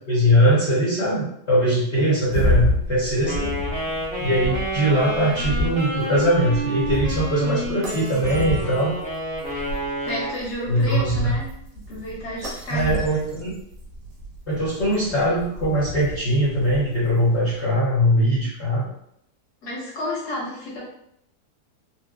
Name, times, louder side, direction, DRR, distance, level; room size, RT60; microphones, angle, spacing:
voice 1, 0.1-3.5 4.2-8.9 10.7-11.4 12.7-13.5 14.5-18.9, equal, 50° left, -8 dB, 1.1 m, -21 dB
Burning(improved), 2.3-17.4, equal, 85° right, 1.6 m, -30 dB
Wind instrument woodwind instrument, 3.3-10.4, right 1 dB, 10° left, 0.4 m, -30 dB
voice 2, 10.0-11.5 11.9-13.0 19.6-20.9, left 1 dB, 75° left, -5 dB, 1.6 m, -31 dB
4.2 x 2.1 x 2.3 m, 0.73 s
omnidirectional pair, 1.8 m